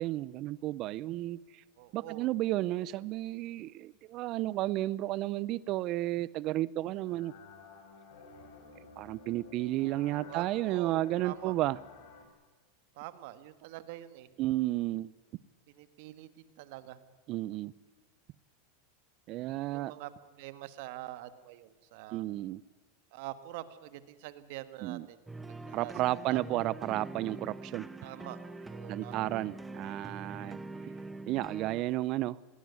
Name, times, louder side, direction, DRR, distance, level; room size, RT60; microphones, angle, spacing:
voice 1, 0.0-1.6 1.9-7.3 9.0-11.8 14.4-15.1 17.3-17.7 19.3-19.9 22.1-22.6 24.8-25.1 25.7-27.9 28.9-30.6 31.3-32.4, right 16 dB, 50° right, 21 dB, 0.6 m, -32 dB
voice 2, 1.8-2.3 10.3-11.5 13.0-14.3 15.7-16.3 16.6-17.0 19.6-22.2 23.1-25.2 25.6-25.9 26.3-26.4 28.0-28.4 28.7-29.2, right 15 dB, 65° right, 13 dB, 1.6 m, -45 dB
sound 1, 7.1-12.3, left 4 dB, 70° left, 5.0 m, -52 dB
sound 2, 25.3-31.8, right 2 dB, 10° right, 1.2 m, -44 dB
19.5 x 17.0 x 9.6 m, 1.3 s
hypercardioid pair, 110°, 0 cm